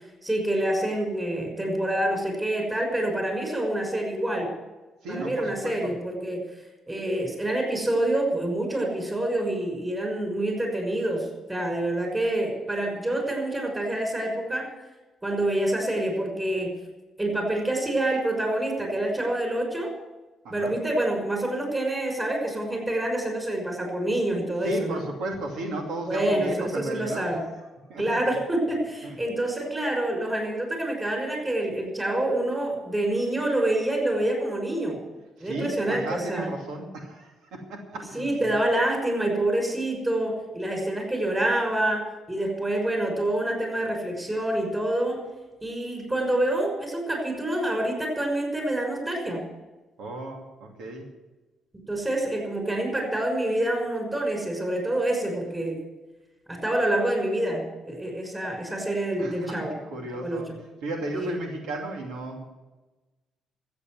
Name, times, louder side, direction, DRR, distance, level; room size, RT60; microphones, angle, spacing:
voice 1, 0.2-4.5 5.1-6.4 6.9-14.7 15.2-16.7 17.2-19.9 20.5-25.0 26.1-27.4 28.0-35.0 35.4-36.5 38.1-45.2 45.6-49.4 51.9-55.8 56.5-59.8 60.1-60.6 61.1-61.4, right 1 dB, 15° right, 2 dB, 5.9 m, -27 dB
voice 2, 5.0-5.7 20.4-20.7 24.6-27.4 27.9-28.4 29.0-29.2 35.4-38.5 50.0-51.1 59.2-60.5 60.8-62.5, right 2 dB, 85° right, 1 dB, 2.6 m, -34 dB
14.0 x 8.7 x 9.4 m, 1.1 s
cardioid pair, 90°, 0 cm